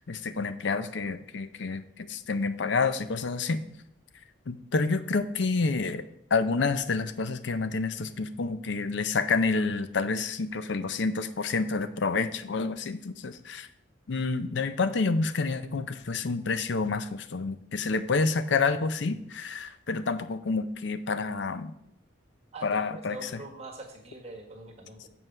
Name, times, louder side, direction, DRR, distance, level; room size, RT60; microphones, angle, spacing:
voice 1, 0.0-3.6 4.5-6.0 6.3-13.7 14.1-21.7 22.6-23.3, left 4 dB, 65° left, 12 dB, 0.5 m, -28 dB
voice 2, 22.5-25.1, right 2 dB, 30° right, -1 dB, 1.6 m, -43 dB
7.5 x 4.7 x 6.6 m, 0.74 s
head